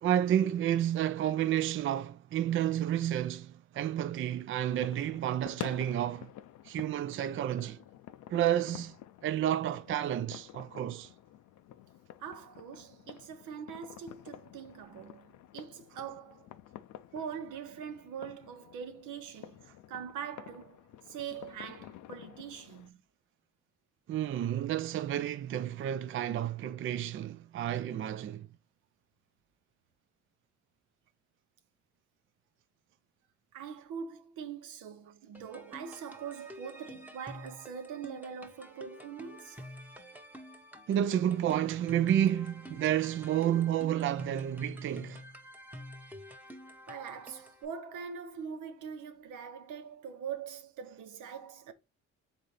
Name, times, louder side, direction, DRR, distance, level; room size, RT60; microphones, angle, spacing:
voice 1, 0.0-6.3 6.6-7.8 8.3-8.9 9.2-11.1 24.1-28.5 40.9-45.2, right 11 dB, 45° right, 0.4 m, -30 dB
sound 1, 4.6-22.9, left 12 dB, 75° left, 0.5 m, -50 dB
voice 2, 12.2-16.5 17.1-23.0 33.5-39.6 46.9-51.7, right 7 dB, 85° right, 0.9 m, -43 dB
sound 2, 35.3-47.6, equal, 5° right, 0.9 m, -49 dB
4.1 x 3.9 x 3.2 m
cardioid pair, 90°, 30 cm